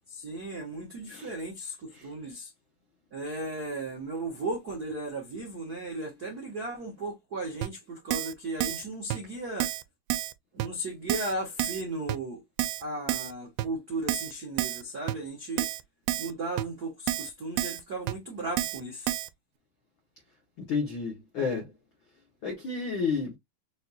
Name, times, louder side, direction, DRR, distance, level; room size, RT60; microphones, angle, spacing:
voice 1, 0.1-2.5 3.1-9.7 10.5-12.4 12.8-15.7 16.2-19.1, right 2 dB, 70° right, 0.9 m, -36 dB
Keyboard (musical), 7.6-7.7 8.1-8.3 8.6-8.8 9.1-9.2 9.6-9.8 10.1-10.3 10.6-10.7 11.1-11.3 11.6-11.8 12.1-12.2 12.6-12.8 13.1-13.3 13.6-13.7 14.1-14.3 14.6-14.8 15.1-15.2 15.6-15.8 16.1-16.3 16.6-16.7 17.1-17.3 17.6-17.8 18.1-18.2 18.6-18.8 19.1-19.3, right 14 dB, 90° right, 2.3 m, -30 dB
voice 2, 20.6-21.7 22.4-23.4, left 5 dB, 70° left, 1.1 m, -31 dB
6.3 x 2.3 x 2.7 m
omnidirectional pair, 4.0 m